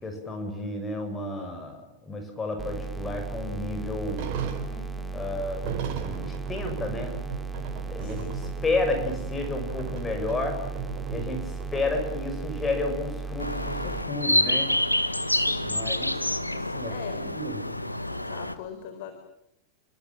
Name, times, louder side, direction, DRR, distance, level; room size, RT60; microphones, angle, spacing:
voice 1, 0.0-4.2 5.1-7.2 7.9-10.6 11.1-14.7 15.6-16.1 16.5-17.6, left 2 dB, 15° left, 4 dB, 6.8 m, -32 dB
sound 1, 2.6-14.0, right 4 dB, 10° right, 3.3 m, -35 dB
sound 2, 4.1-12.5 12.7-12.8 13.3-13.4 13.8-15.4, right 7 dB, 45° right, 5.0 m, -37 dB
voice 2, 4.7-5.2 8.0-8.6 11.1-11.6 15.3-15.9 16.6-17.2 18.1-19.2, left 8 dB, 50° left, 7 dB, 4.1 m, -43 dB
sound 3, 13.4-18.5, left 1 dB, 85° left, 1.7 m, -27 dB
29.5 x 25.5 x 7.5 m, 0.78 s
figure-of-eight pair, 90°, 0 cm